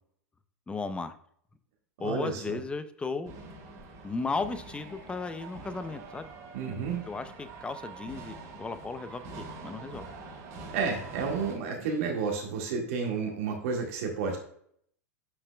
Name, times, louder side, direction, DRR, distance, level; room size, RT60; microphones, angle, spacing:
voice 1, 0.7-1.1 2.0-3.3 4.0-6.3 7.1-10.1, left 4 dB, 10° left, 11 dB, 0.6 m, -35 dB
voice 2, 2.0-2.6 6.5-7.0 10.7-14.4, right 5 dB, 60° right, 1 dB, 1.9 m, -31 dB
sound 1, 3.2-11.6, right 3 dB, 45° right, 2.7 m, -45 dB
8.0 x 5.8 x 2.3 m, 0.65 s
hypercardioid pair, 95°, 8 cm